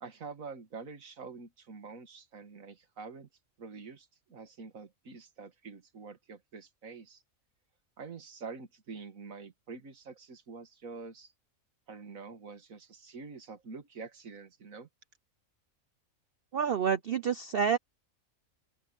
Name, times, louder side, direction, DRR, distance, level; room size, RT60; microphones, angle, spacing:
voice 1, 0.0-3.3 3.6-7.2 8.0-11.3 11.9-14.9, right 4 dB, 75° right, 2.1 m, -46 dB
voice 2, 16.5-17.8, right 7 dB, 50° right, 0.8 m, -28 dB
open air
omnidirectional pair, 1.5 m